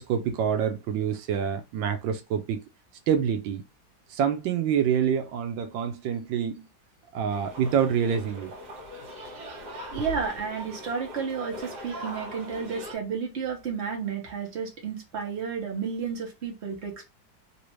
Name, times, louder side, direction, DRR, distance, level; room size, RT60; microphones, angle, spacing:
voice 1, 0.0-2.6 3.1-3.6 4.1-6.7 7.1-8.5, right 8 dB, 80° right, 1.4 m, -26 dB
sound 1, 7.3-12.9, equal, 55° right, 1.7 m, -41 dB
voice 2, 9.9-17.1, right 6 dB, 40° right, 1.2 m, -32 dB
3.3 x 2.8 x 3.0 m
omnidirectional pair, 2.0 m